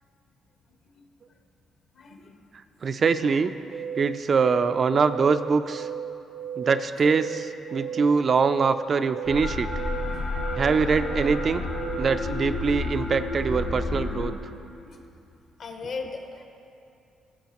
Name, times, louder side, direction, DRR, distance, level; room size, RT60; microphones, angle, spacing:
voice 1, 1.9-2.3 7.7-8.3 10.0-10.3 14.8-15.0 15.6-16.4, left 4 dB, 60° left, 3 dB, 1.2 m, -39 dB
voice 2, 2.8-3.5 4.0-5.9 6.6-9.7 10.6-11.7 12.0-14.3, right 5 dB, 45° right, 10 dB, 0.3 m, -23 dB
sound 1, 3.7-12.2, right 8 dB, 75° right, 0.7 m, -36 dB
sound 2, 9.2-14.3, left 2 dB, 80° left, 1.7 m, -30 dB
16.0 x 7.6 x 3.0 m, 2.6 s
cardioid pair, 90°, 0 cm